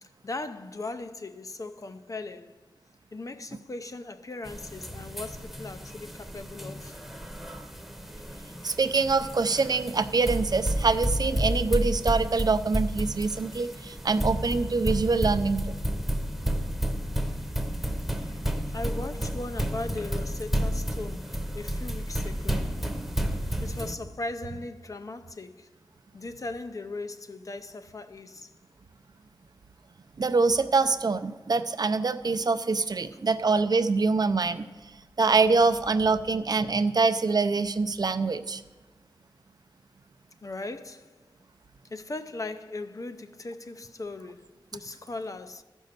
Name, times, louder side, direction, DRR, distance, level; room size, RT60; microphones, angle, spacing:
voice 1, 0.0-2.6 3.1-7.0 17.3-17.4 17.7-18.4 18.7-22.8 23.6-25.7 26.1-28.5 40.4-41.2 41.9-45.6, left 2 dB, 45° left, 0.5 m, -38 dB
sound 1, 4.4-23.9, equal, ahead, 0.9 m, -31 dB
voice 2, 8.6-15.7 30.2-34.6 35.2-38.6, right 4 dB, 55° right, 0.5 m, -25 dB
14.0 x 5.4 x 6.6 m
wide cardioid pair, 85°, 8 cm